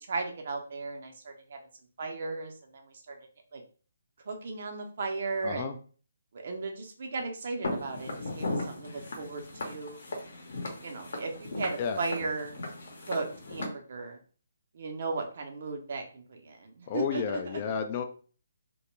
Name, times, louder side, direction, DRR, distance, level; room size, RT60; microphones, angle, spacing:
voice 1, 0.0-1.6 2.0-3.2 3.5-3.6 4.3-5.8 6.3-10.1 10.8-12.6 13.1-14.2 14.7-17.4, right 3 dB, 55° right, 3 dB, 0.6 m, -36 dB
voice 2, 5.4-5.7 11.8-12.0 16.9-18.0, left 7 dB, 35° left, 7 dB, 0.3 m, -31 dB
Walk footsteps, 7.6-13.7, left 2 dB, 65° left, 0.8 m, -37 dB
2.2 x 2.1 x 3.1 m, 0.41 s
figure-of-eight pair, 145°, 0 cm